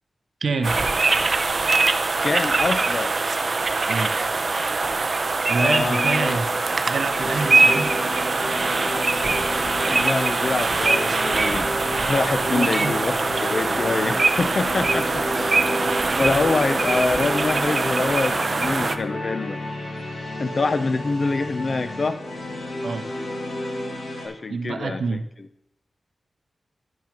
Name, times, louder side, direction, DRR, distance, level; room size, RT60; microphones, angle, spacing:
voice 1, 0.4-0.7 3.9-4.1 5.5-6.4 6.9-7.9 12.5-13.0 22.8-23.0 24.5-25.2, right 4 dB, 80° right, 8 dB, 0.7 m, -26 dB
sound 1, 0.6-19.0, right 3 dB, 40° right, 0.5 m, -22 dB
voice 2, 2.2-3.1 5.6-6.7 9.9-11.7 12.0-15.6 16.2-19.6 20.4-22.2 24.2-25.0, left 3 dB, 45° left, 10 dB, 0.6 m, -25 dB
sound 2, 7.1-24.3, left 1 dB, 80° left, 2.4 m, -32 dB
10.5 x 6.0 x 5.1 m, 0.82 s
wide cardioid pair, 165°, 0 cm